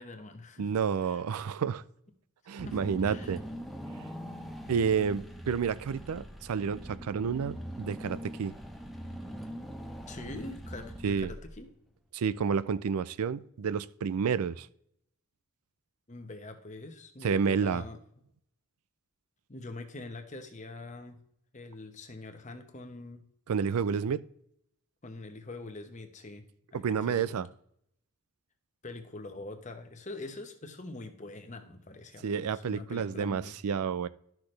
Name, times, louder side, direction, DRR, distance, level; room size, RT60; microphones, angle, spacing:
voice 1, 0.0-0.7 1.0-1.2 2.6-3.4 10.1-11.7 16.1-18.0 19.5-21.2 21.5-23.2 25.0-26.4 26.7-27.4 28.8-33.5, left 2 dB, 35° left, 6 dB, 1.0 m, -44 dB
voice 2, 0.6-1.8 2.5-3.4 4.7-8.6 11.0-11.3 12.1-14.7 17.2-17.8 23.5-24.2 26.7-27.5 32.2-34.1, right 6 dB, 80° right, 16 dB, 0.4 m, -30 dB
Car / Engine, 2.6-11.8, equal, ahead, 0.7 m, -42 dB
12.5 x 6.0 x 3.3 m, 0.71 s
head